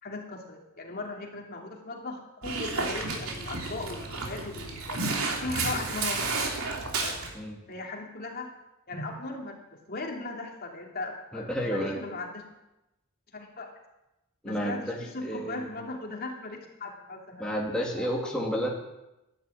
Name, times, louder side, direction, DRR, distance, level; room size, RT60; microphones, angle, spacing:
voice 1, 0.0-5.0 5.4-6.4 7.0-7.2 7.7-8.5 8.9-9.6 9.9-12.4 13.3-13.7 14.4-17.5 18.0-18.3, left 2 dB, 45° left, 1 dB, 2.8 m, -38 dB
Dog, 2.4-7.3, right 3 dB, 85° right, 3.0 m, -31 dB
voice 2, 11.3-12.0 14.4-15.7 17.4-18.7, equal, 5° left, -3 dB, 2.6 m, -31 dB
15.0 x 11.5 x 8.6 m, 0.95 s
head